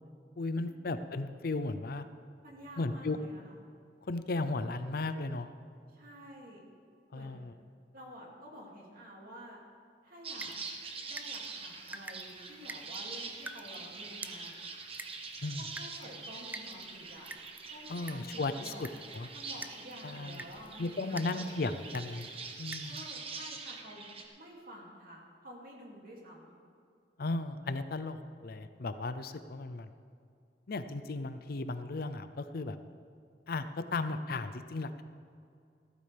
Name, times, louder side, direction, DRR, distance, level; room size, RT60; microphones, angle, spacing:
voice 1, 0.4-2.0 2.8-3.2 4.0-5.5 7.1-7.5 15.4-15.6 17.9-18.9 19.1-19.3 20.0-20.4 20.8-22.3 22.6-23.0 27.2-29.9 30.7-32.8 33.5-33.7 33.9-35.0, left 3 dB, 55° left, 11 dB, 0.6 m, -35 dB
voice 2, 2.4-3.6 5.9-6.6 7.1-7.5 7.9-9.6 10.0-10.5 11.1-14.6 15.6-17.3 17.7-18.8 19.3-21.5 22.9-24.0 24.4-26.6, equal, 55° right, -2 dB, 2.5 m, -50 dB
sound 1, 10.2-24.3, right 4 dB, 35° right, 1.1 m, -44 dB
sound 2, 10.4-23.1, right 2 dB, 10° right, 0.4 m, -50 dB
15.0 x 13.5 x 3.4 m, 2.4 s
head